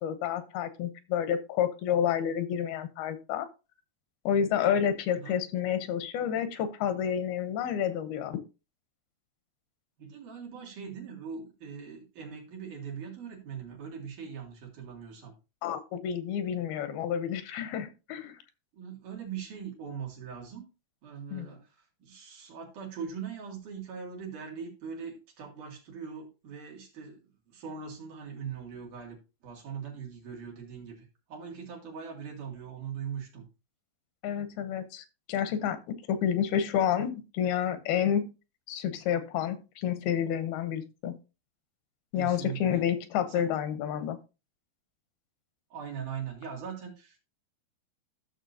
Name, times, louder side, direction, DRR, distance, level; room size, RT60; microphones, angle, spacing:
voice 1, 0.0-3.5 4.3-8.4 15.6-18.3 21.3-21.5 34.2-38.3 38.7-41.2 42.1-44.2, left 9 dB, 90° left, 11 dB, 2.8 m, -29 dB
voice 2, 5.1-5.4 10.0-15.3 18.7-20.7 21.0-21.8 22.0-27.2 27.5-29.2 29.4-33.5 42.2-42.9 43.3-43.5 45.7-47.2, right 7 dB, 60° right, -1 dB, 3.7 m, -41 dB
14.0 x 6.4 x 2.7 m, 0.29 s
omnidirectional pair, 4.2 m